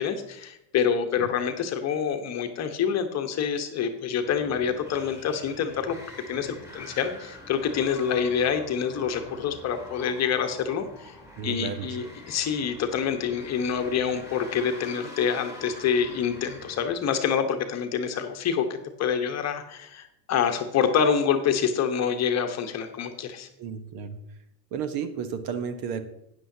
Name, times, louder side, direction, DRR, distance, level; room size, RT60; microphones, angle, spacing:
voice 1, 0.0-6.0 6.3-11.1 11.4-23.5, left 7 dB, 30° left, 6 dB, 1.1 m, -27 dB
sound 1, 4.0-16.9, left 1 dB, 5° right, 2.4 m, -45 dB
voice 2, 11.4-12.0 23.6-24.2 24.7-26.0, right 7 dB, 45° right, 10 dB, 1.1 m, -32 dB
12.5 x 9.6 x 2.8 m, 0.82 s
hypercardioid pair, 100°, 50 cm